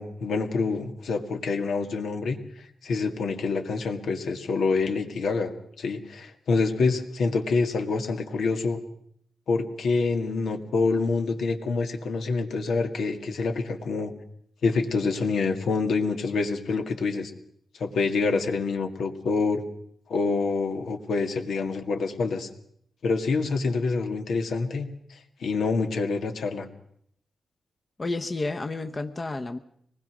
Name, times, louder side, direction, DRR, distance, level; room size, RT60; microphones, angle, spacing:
voice 1, 0.0-2.4 2.8-8.8 9.5-14.1 14.6-17.3 17.8-19.6 20.1-22.5 23.0-26.7, left 4 dB, 85° left, 4 dB, 2.0 m, -26 dB
voice 2, 28.0-29.6, left 2 dB, 30° left, 6 dB, 0.9 m, -30 dB
24.5 x 19.5 x 6.1 m, 0.67 s
wide cardioid pair, 100°, 0 cm